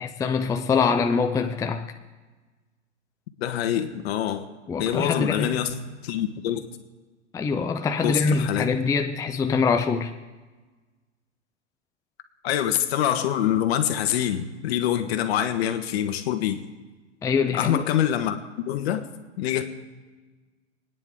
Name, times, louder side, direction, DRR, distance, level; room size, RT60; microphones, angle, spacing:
voice 1, 0.0-1.9 4.7-5.6 7.3-10.1 17.2-17.8, left 5 dB, 10° left, 5 dB, 0.5 m, -24 dB
voice 2, 3.4-4.5 4.8-5.7 6.0-6.6 8.0-8.6 12.4-16.6 17.5-19.1 19.4-19.6, left 11 dB, 60° left, 7 dB, 1.6 m, -25 dB
28.5 x 9.9 x 3.8 m, 1.3 s
hypercardioid pair, 120°, 35 cm